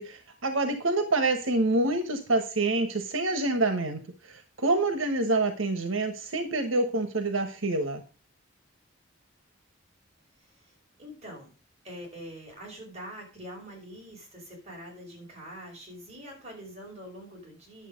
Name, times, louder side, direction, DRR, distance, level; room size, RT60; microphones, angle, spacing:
voice 1, 0.0-4.0 4.6-8.0, right 2 dB, 85° right, 7 dB, 1.3 m, -26 dB
voice 2, 11.0-11.5 11.8-17.9, equal, 35° right, -1 dB, 5.1 m, -44 dB
10.0 x 7.3 x 5.1 m, 0.34 s
head